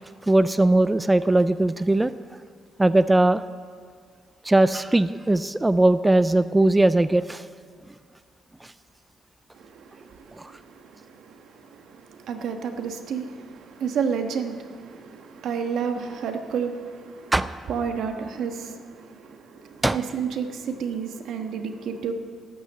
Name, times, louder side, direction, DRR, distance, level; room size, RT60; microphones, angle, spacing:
voice 1, 0.2-2.1 2.8-3.4 4.4-7.4 8.6-8.7 10.4-10.5 17.3-17.5 19.8-20.0, right 2 dB, 15° right, 0.4 m, -19 dB
voice 2, 9.5-17.3 17.7-22.1, right 6 dB, 80° right, 1.3 m, -31 dB
12.5 x 9.3 x 7.3 m
cardioid pair, 75°, 0 cm